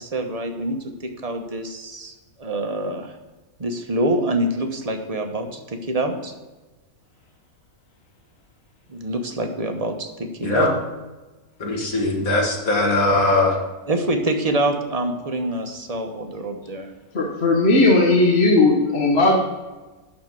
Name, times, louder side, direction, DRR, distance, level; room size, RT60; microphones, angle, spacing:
voice 1, 0.0-3.1 3.6-6.3 8.9-10.8 13.9-16.9, right 1 dB, 25° right, 5 dB, 1.1 m, -26 dB
voice 2, 11.6-13.6, left 2 dB, 65° left, -1 dB, 2.5 m, -20 dB
voice 3, 17.1-19.4, left 2 dB, 45° left, 0 dB, 1.4 m, -16 dB
12.0 x 4.3 x 7.5 m, 1.2 s
omnidirectional pair, 1.6 m